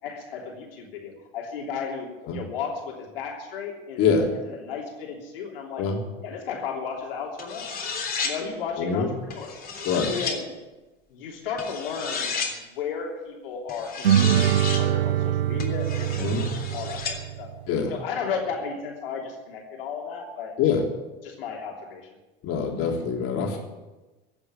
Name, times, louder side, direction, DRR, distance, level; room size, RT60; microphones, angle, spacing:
voice 1, 0.0-5.9 6.2-7.7 8.2-9.5 10.1-10.5 11.1-16.3 16.7-17.5 17.9-20.5 21.2-22.0, left 6 dB, 70° left, -1 dB, 3.2 m, -34 dB
sound 1, 7.4-8.4 9.3-10.4 11.6-12.5 13.7-14.8 15.6-17.2, left 5 dB, 30° left, 3.5 m, -32 dB
voice 2, 8.8-9.1 9.9-10.1 16.2-16.5 17.7-17.9 20.6-20.8 22.4-23.6, left 6 dB, 50° left, 1 dB, 3.5 m, -24 dB
sound 2, 14.0-17.7, right 10 dB, 85° right, 0.5 m, -24 dB
16.0 x 7.9 x 9.6 m, 1.1 s
hypercardioid pair, 75°, 29 cm